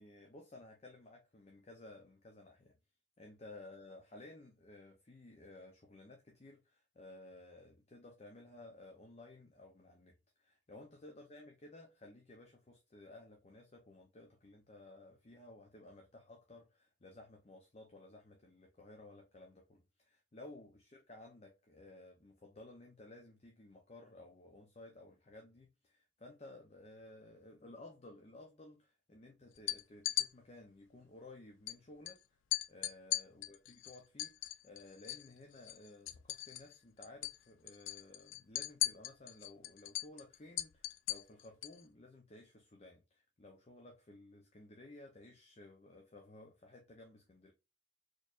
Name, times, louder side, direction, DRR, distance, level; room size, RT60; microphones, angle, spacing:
voice 1, 0.0-2.7 3.2-32.2 32.7-47.5, left 2 dB, 35° left, 0.6 m, -56 dB
sound 1, 29.6-30.3 31.7-31.8 32.1-32.2 32.5-35.3 35.6-36.8 37.0-37.4 37.7-41.8, left 15 dB, 80° left, 0.3 m, -38 dB
4.3 x 3.1 x 2.4 m
head